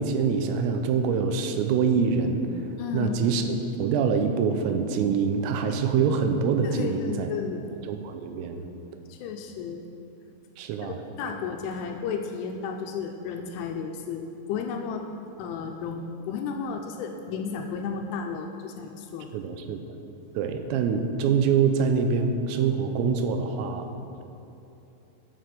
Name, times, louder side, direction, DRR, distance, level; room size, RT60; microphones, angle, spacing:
voice 1, 0.0-7.3 7.9-8.7 10.6-11.0 19.3-19.8 20.3-23.9, right 5 dB, 90° right, 6 dB, 3.3 m, -25 dB
voice 2, 2.8-3.2 6.6-7.7 9.1-9.8 10.8-15.1 15.4-19.3, left 6 dB, 85° left, 4 dB, 2.9 m, -33 dB
9.5 x 6.6 x 7.5 m, 3.0 s
omnidirectional pair, 5.9 m